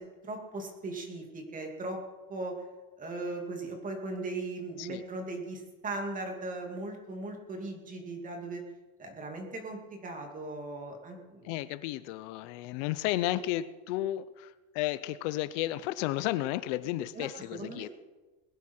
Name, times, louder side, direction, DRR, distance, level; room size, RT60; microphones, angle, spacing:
voice 1, 0.0-2.0 2.3-2.6 3.0-8.7 9.0-11.5 17.1-17.9, right 2 dB, 20° right, 3 dB, 2.4 m, -38 dB
voice 2, 11.4-17.9, left 15 dB, 65° left, 15 dB, 0.7 m, -33 dB
21.0 x 11.0 x 4.4 m, 1.2 s
cardioid pair, 165°, 38 cm